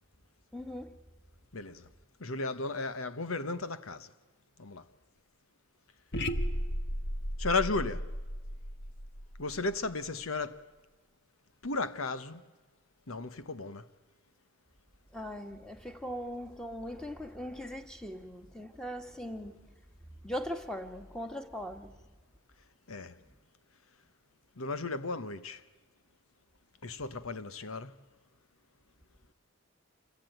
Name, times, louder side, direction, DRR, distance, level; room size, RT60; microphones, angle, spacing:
voice 1, 0.5-0.9 15.1-19.6 20.2-21.9, equal, 5° left, 1.9 m, -40 dB
voice 2, 1.5-1.9 2.2-4.1 4.6-4.8 7.4-8.1 9.4-10.6 11.6-12.4 13.1-13.9 22.9-23.1 24.6-25.6 26.8-27.9, left 3 dB, 80° left, 1.1 m, -34 dB
sound 1, 6.1-10.2, equal, 55° left, 1.4 m, -35 dB
27.5 x 22.5 x 9.1 m
head